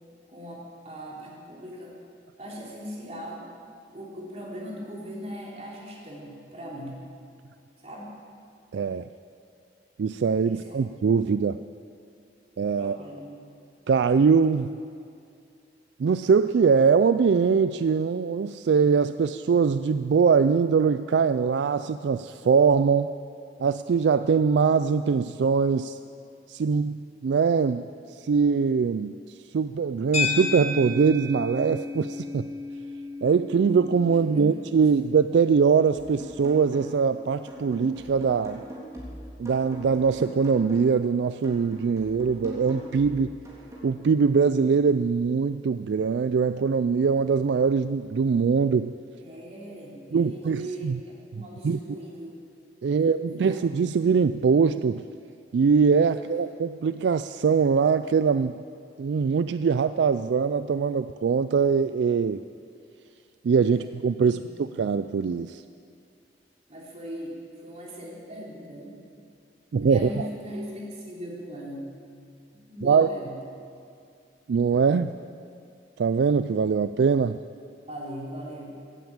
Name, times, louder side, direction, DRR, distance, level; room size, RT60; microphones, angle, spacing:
voice 1, 0.3-1.9 2.4-3.4 3.9-7.0 7.8-8.2 10.5-10.8 12.7-13.3 34.3-34.6 49.2-52.3 52.9-53.6 63.7-63.8 64.2-64.7 66.7-69.0 69.8-71.9 72.5-73.4 77.9-78.8, equal, 40° right, -4 dB, 3.7 m, -39 dB
voice 2, 8.7-9.1 10.0-11.6 12.6-13.0 13.9-14.7 16.0-23.1 23.6-26.0 26.5-27.8 28.2-29.1 29.5-32.5 33.2-38.6 39.4-43.4 43.8-48.9 50.1-51.0 51.6-51.8 52.8-55.0 55.5-58.5 59.0-62.4 63.4-65.6 69.7-70.1 72.8-73.1 74.5-75.1 76.0-77.4, right 5 dB, 75° right, 12 dB, 0.3 m, -22 dB
sound 1, 30.1-38.6, left 4 dB, 40° left, 4.1 m, -35 dB
sound 2, 35.9-37.1 37.5-41.0 41.4-43.9, equal, 20° right, 3.4 m, -42 dB
16.0 x 9.4 x 8.7 m, 2.4 s
head